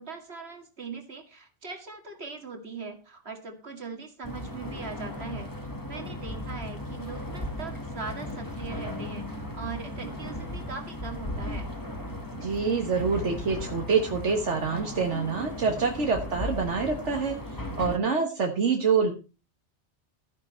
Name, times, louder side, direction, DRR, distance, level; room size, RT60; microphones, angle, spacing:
voice 1, 0.0-5.5 5.8-11.7, right 4 dB, 60° right, 5 dB, 2.6 m, -40 dB
sound 1, 4.2-18.0, left 1 dB, 15° left, 1.8 m, -36 dB
voice 2, 12.3-17.4 17.8-19.1, right 5 dB, 80° right, 3 dB, 1.8 m, -26 dB
13.5 x 10.5 x 4.4 m, 0.32 s
omnidirectional pair, 1.2 m